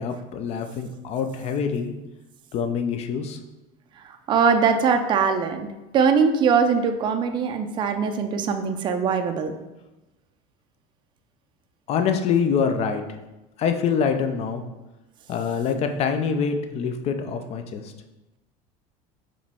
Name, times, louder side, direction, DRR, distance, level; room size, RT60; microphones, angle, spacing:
voice 1, 0.0-1.9 2.5-3.4 11.9-13.0 13.6-14.6 15.3-17.9, left 6 dB, 40° left, 7 dB, 0.5 m, -25 dB
voice 2, 4.0-5.7 5.9-9.6, right 6 dB, 30° right, 6 dB, 0.4 m, -21 dB
4.8 x 3.1 x 3.5 m, 1.0 s
supercardioid pair, 135°, 17 cm